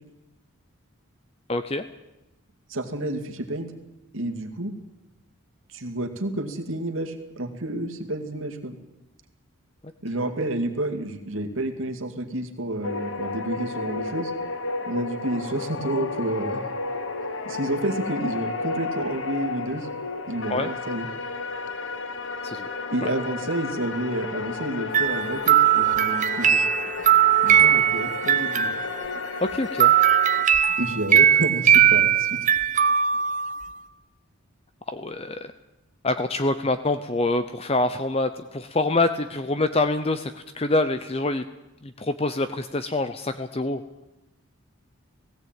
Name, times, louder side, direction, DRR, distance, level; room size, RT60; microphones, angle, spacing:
voice 1, 1.5-1.8 20.5-20.7 22.4-22.7 29.4-29.9 34.9-35.5 36.0-41.4 41.8-43.8, left 2 dB, 25° left, 10 dB, 0.7 m, -25 dB
voice 2, 2.7-3.7 4.1-4.7 5.7-8.8 10.0-14.3 14.8-16.6 17.5-19.9 20.3-21.1 22.9-26.6 27.4-28.7 30.8-32.4, right 1 dB, 65° right, 6 dB, 2.3 m, -30 dB
sound 1, 12.8-30.4, left 3 dB, 60° left, 1.4 m, -32 dB
sound 2, 24.9-29.3 29.8-33.8, right 9 dB, 35° right, 0.9 m, -19 dB
18.0 x 17.0 x 9.0 m, 0.96 s
head